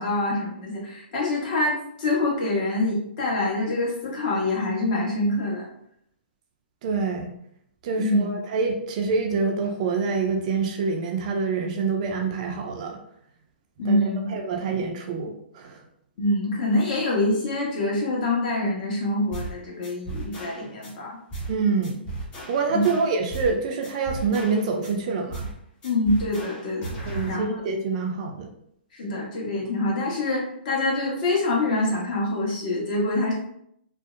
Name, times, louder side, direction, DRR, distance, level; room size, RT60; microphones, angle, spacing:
voice 1, 0.0-5.7 8.0-8.3 13.8-14.3 16.2-21.2 22.7-22.9 25.8-27.0 27.3-27.6 28.9-33.3, left 2 dB, 45° left, -3 dB, 1.0 m, -25 dB
voice 2, 6.8-7.3 7.8-13.0 13.9-15.8 21.5-22.0 22.5-25.5 27.1-28.5, right 4 dB, 40° right, 3 dB, 0.4 m, -26 dB
sound 1, 19.3-19.6 19.8-20.9 21.3-21.6 21.8-23.6 23.8-24.9 25.3-25.6 25.8-27.3, right 2 dB, 20° left, 0.6 m, -35 dB
2.6 x 2.0 x 2.4 m, 0.72 s
hypercardioid pair, 145°, 6 cm